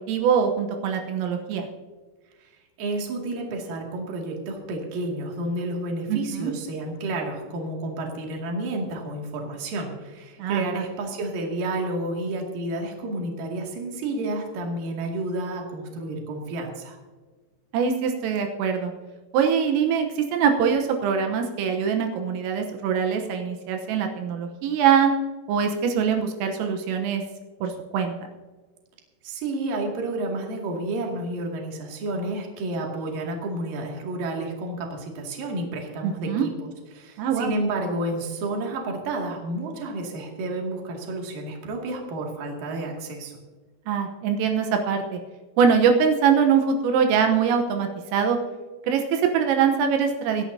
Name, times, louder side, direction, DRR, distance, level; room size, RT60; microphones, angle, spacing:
voice 1, 0.0-1.7 6.1-6.5 10.4-10.8 17.7-18.9 19.3-25.1 25.5-27.2 27.6-28.2 36.0-36.5 37.2-37.5 43.9-45.2 45.6-48.4 48.8-50.4, right 7 dB, 80° right, 4 dB, 3.6 m, -23 dB
voice 2, 2.8-17.0 29.2-43.3, right 2 dB, 50° right, 0 dB, 3.4 m, -30 dB
24.5 x 11.5 x 2.8 m, 1.3 s
omnidirectional pair, 5.9 m